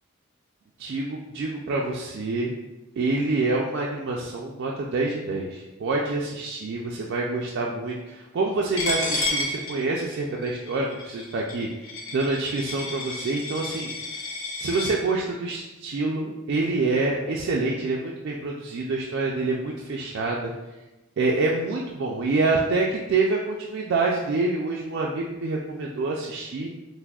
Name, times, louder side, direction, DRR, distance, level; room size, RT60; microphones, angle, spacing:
voice 1, 0.8-2.5 3.0-13.9 14.6-20.5 21.2-26.7, right 3 dB, 55° right, -2 dB, 0.3 m, -27 dB
Coin (dropping), 8.8-14.9, left 2 dB, 60° left, 0.7 m, -31 dB
5.7 x 2.0 x 2.3 m, 1.1 s
head